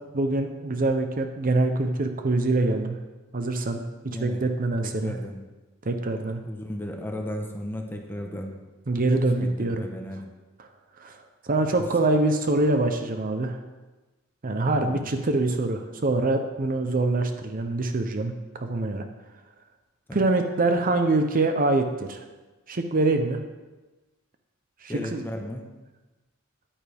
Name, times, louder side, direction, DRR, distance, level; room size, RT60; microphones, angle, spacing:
voice 1, 0.1-3.0 3.3-5.2 5.8-6.4 8.9-9.9 11.0-13.6 14.4-19.0 20.1-22.2 22.7-23.4 24.8-25.3, right 2 dB, 40° right, 6 dB, 0.7 m, -25 dB
voice 2, 4.0-4.4 4.8-5.4 6.4-8.5 9.1-10.2 14.8-15.1 20.1-20.2 24.9-25.6, left 1 dB, 10° left, 2 dB, 1.0 m, -35 dB
10.0 x 9.2 x 3.5 m, 1.2 s
head